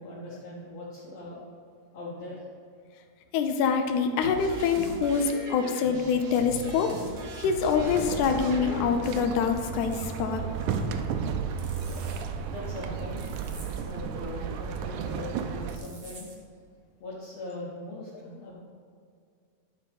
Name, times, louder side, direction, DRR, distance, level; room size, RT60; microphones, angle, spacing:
voice 1, 0.0-1.4 1.9-2.4 12.5-13.4 13.8-16.3 17.0-18.5, left 2 dB, 65° left, -6 dB, 2.3 m, -40 dB
voice 2, 3.3-6.9 7.4-10.4, left 6 dB, 80° left, 6 dB, 2.1 m, -25 dB
sound 1, 4.2-9.2, right 4 dB, 70° right, 0.9 m, -40 dB
sound 2, 7.8-15.8, right 6 dB, 85° right, 2.1 m, -33 dB
sound 3, 9.9-10.1 11.6-12.2 13.2-13.8 15.7-16.4, right 3 dB, 50° right, 1.1 m, -48 dB
10.5 x 5.3 x 5.3 m, 2.3 s
omnidirectional pair, 3.4 m